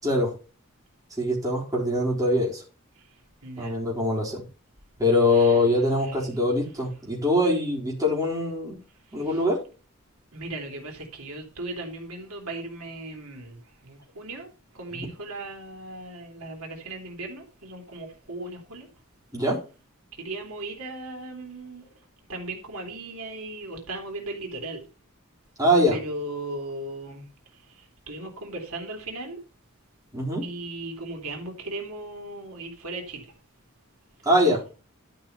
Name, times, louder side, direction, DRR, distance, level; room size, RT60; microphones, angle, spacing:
voice 1, 1.2-2.6 3.6-4.4 5.0-8.8 9.1-9.6 14.9-15.0 19.3-19.6 25.6-26.0 30.1-30.4 34.3-34.6, left 1 dB, 15° right, 4.2 m, -23 dB
voice 2, 3.4-3.8 5.3-5.6 6.0-6.2 9.1-9.4 10.3-14.5 14.7-18.9 20.1-21.9 22.3-24.9 25.9-27.3 27.5-29.4 30.4-33.3, right 2 dB, 90° right, 3.0 m, -37 dB
12.0 x 6.0 x 5.5 m
head